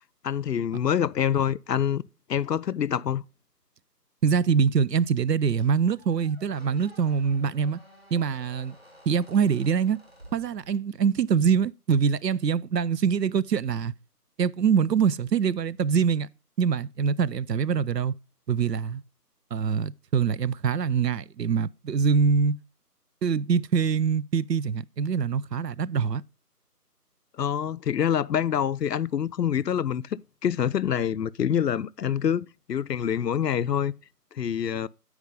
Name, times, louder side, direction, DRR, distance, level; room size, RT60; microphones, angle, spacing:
voice 1, 0.2-2.0 2.3-3.2 27.4-33.9 34.3-34.9, left 9 dB, 85° left, 0.5 m, -26 dB
voice 2, 4.2-7.8 8.1-8.7 9.1-10.0 10.3-13.9 14.4-16.3 16.6-18.1 18.5-19.0 19.5-22.6 23.2-26.2, right 6 dB, 85° right, 0.6 m, -24 dB
Squeak, 5.6-11.1, equal, 40° right, 1.1 m, -53 dB
8.8 x 4.8 x 5.2 m
figure-of-eight pair, 180°, 48 cm